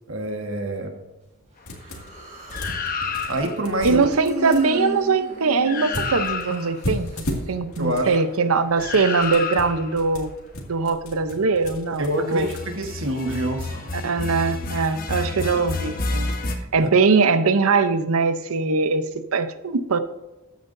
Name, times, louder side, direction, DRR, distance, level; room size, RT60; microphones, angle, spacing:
voice 1, 0.1-0.9 1.8-2.0 3.3-4.0 7.8-8.2 12.0-13.9 16.8-16.9, right 1 dB, 60° right, 4 dB, 1.4 m, -26 dB
sound 1, 1.7-2.2 2.5-4.6 5.9-8.1 8.6-12.8, equal, 75° left, 2.2 m, -34 dB
Human voice, 1.8-2.8 3.9-6.7, equal, 35° right, 3.0 m, -34 dB
sound 2, 2.5-3.7 5.3-5.4 5.6-6.8 8.8-9.9 12.3-16.5, left 4 dB, 40° left, 1.1 m, -29 dB
voice 2, 3.8-10.3 10.7-12.5 14.0-16.3 16.7-19.0 19.3-20.0, right 4 dB, 85° right, 12 dB, 0.7 m, -21 dB
13.5 x 9.3 x 2.7 m, 1.1 s
head